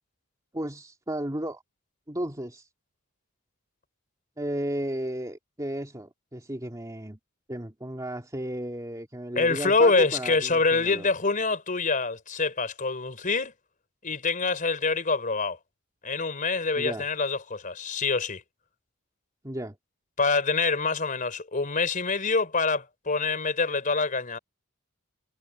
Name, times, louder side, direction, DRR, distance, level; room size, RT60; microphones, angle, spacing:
voice 1, 0.5-1.6 2.1-2.7 4.4-7.2 7.5-11.1 16.8-17.1 19.4-19.8, right 1 dB, 15° right, 2.7 m, -34 dB
voice 2, 9.4-13.5 14.0-15.6 16.0-18.4 20.2-24.4, left 4 dB, 40° left, 4.0 m, -25 dB
head